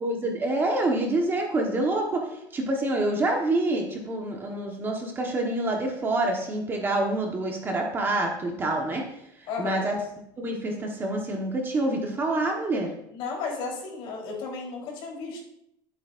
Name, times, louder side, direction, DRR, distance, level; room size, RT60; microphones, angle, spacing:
voice 1, 0.0-9.0 9.4-10.0 10.4-12.9, right 2 dB, 20° right, 1 dB, 1.2 m, -27 dB
voice 2, 9.5-9.9 13.1-15.4, left 4 dB, 50° left, -1 dB, 3.7 m, -33 dB
14.5 x 8.1 x 2.5 m, 0.79 s
cardioid pair, 160°, 11 cm